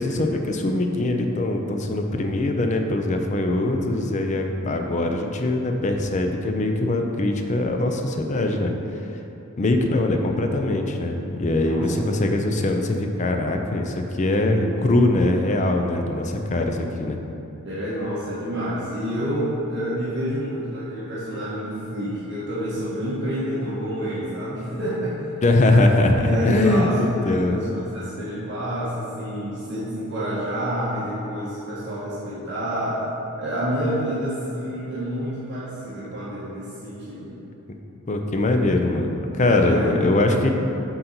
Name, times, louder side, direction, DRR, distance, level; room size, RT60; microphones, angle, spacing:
voice 1, 0.0-8.7 9.6-17.2 25.4-27.6 37.7-37.8 38.1-40.5, left 2 dB, 35° left, 4 dB, 0.5 m, -22 dB
voice 2, 11.6-11.9 17.6-25.2 26.2-33.0 33.4-37.3 39.5-40.1, equal, 55° right, -10 dB, 1.5 m, -28 dB
7.7 x 4.0 x 4.4 m, 2.9 s
head